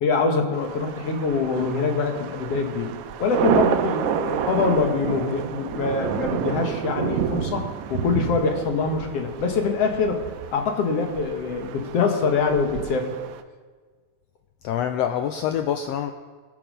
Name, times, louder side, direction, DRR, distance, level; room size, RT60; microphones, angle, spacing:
voice 1, 0.0-10.2 10.5-13.1, left 4 dB, 60° left, 4 dB, 2.1 m, -24 dB
sound 1, 0.5-13.4, right 9 dB, 75° right, 1.8 m, -29 dB
voice 2, 14.6-16.1, left 9 dB, 85° left, 6 dB, 1.4 m, -25 dB
19.0 x 6.9 x 5.2 m, 1.5 s
omnidirectional pair, 3.5 m